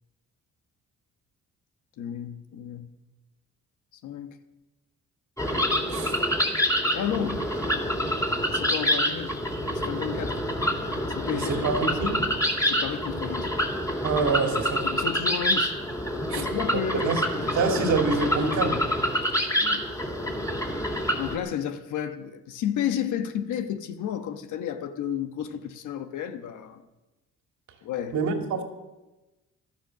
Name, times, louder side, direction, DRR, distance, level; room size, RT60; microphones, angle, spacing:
voice 1, 2.0-2.9 4.0-4.4 6.9-7.5 8.5-9.3 9.7-10.4 11.1-11.5 11.9-12.0 12.6-13.5 14.8-15.7 16.4-17.1 19.6-19.8 21.2-26.8 27.8-28.2, left 9 dB, 80° left, 1.3 m, -32 dB
sound 1, 5.4-21.4, equal, 10° left, 2.9 m, -27 dB
voice 2, 5.9-6.2 11.3-12.3 14.0-14.9 16.3-16.5 17.0-18.8 28.1-28.6, right 4 dB, 70° right, 2.4 m, -26 dB
14.0 x 12.5 x 6.4 m
cardioid pair, 90°, 30 cm